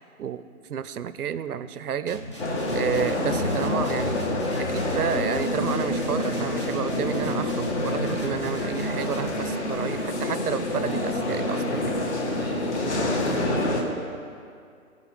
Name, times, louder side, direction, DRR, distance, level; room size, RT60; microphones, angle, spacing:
voice 1, 0.7-2.2 2.7-4.2 4.6-11.9, right 8 dB, 85° right, 14 dB, 0.6 m, -31 dB
sound 1, 2.1-9.6, right 1 dB, 20° left, 0.5 m, -38 dB
sound 2, 2.4-13.8, left 1 dB, 50° left, 1.7 m, -27 dB
voice 2, 10.8-11.7 12.0-13.9, right 1 dB, 5° left, -3 dB, 0.8 m, -36 dB
16.5 x 5.8 x 4.3 m, 2.3 s
hypercardioid pair, 155°, 44 cm